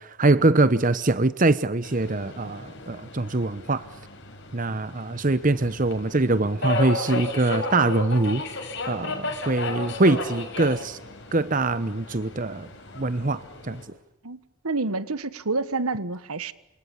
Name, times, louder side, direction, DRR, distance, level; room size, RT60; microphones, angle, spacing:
voice 1, 0.0-3.9 4.5-8.4 8.9-11.0 11.3-12.7 13.0-13.8, right 2 dB, 35° right, 1.0 m, -23 dB
Subway metro underground, 1.8-13.8, left 2 dB, 55° left, 7.5 m, -34 dB
voice 2, 14.6-16.5, right 3 dB, 85° right, 1.6 m, -28 dB
29.5 x 27.0 x 7.3 m
head